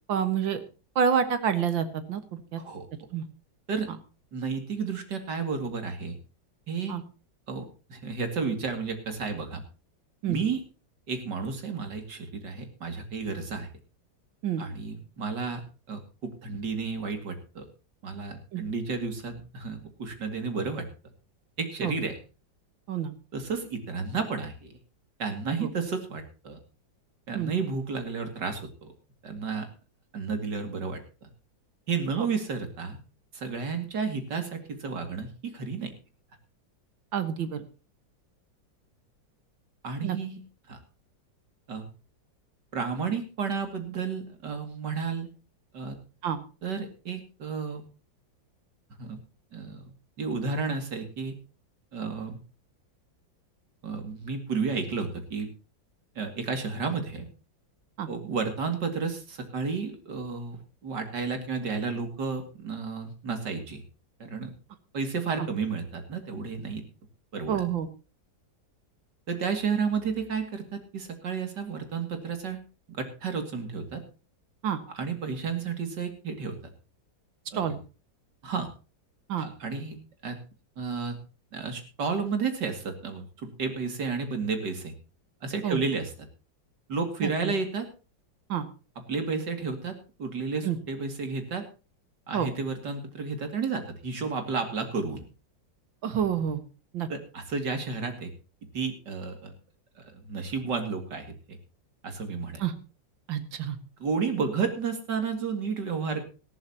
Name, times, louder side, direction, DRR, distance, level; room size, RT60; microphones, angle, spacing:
voice 1, 0.1-0.6 1.0-2.6 3.1-3.2 6.9-7.0 10.2-10.4 14.4-14.6 18.5-18.6 21.8-21.9 22.9-23.1 25.6-25.7 27.3-27.5 32.2-32.3 37.1-37.6 40.0-40.2 46.2-46.4 58.0-58.1 65.4-65.5 67.5-67.9 74.6-74.8 77.5-77.8 79.3-79.5 85.6-85.8 87.2-87.5 88.5-88.7 90.6-90.8 92.3-92.5 96.0-96.6 96.9-97.1 102.6-102.7 103.3-103.8, right 8 dB, 80° right, 10 dB, 2.2 m, -28 dB
voice 2, 2.6-2.9 3.7-3.9 4.3-6.2 6.7-7.0 7.5-9.6 10.3-10.6 11.1-13.7 14.6-17.7 18.0-20.9 21.6-22.2 23.3-24.8 25.2-26.6 27.3-28.9 29.2-29.7 30.1-31.3 31.9-33.0 33.3-35.9 39.8-40.4 40.7-40.8 41.7-41.9 42.7-45.3 45.7-46.0 46.6-47.8 49.0-49.2 49.5-51.3 51.9-52.4 53.8-55.5 56.2-57.3 58.1-63.8 64.2-64.5 64.9-66.8 67.3-67.6 69.3-72.6 73.0-74.0 74.9-76.6 77.5-77.8 78.4-78.7 79.4-80.0 80.2-80.4 80.8-81.2 81.5-84.9 85.4-86.1 86.9-87.9 89.0-91.7 92.3-95.2 97.1-98.3 98.7-99.5 100.0-101.3 102.0-102.6 104.0-106.2, right 5 dB, 65° right, 6 dB, 2.9 m, -32 dB
18.5 x 13.5 x 2.8 m, 0.33 s
omnidirectional pair, 2.1 m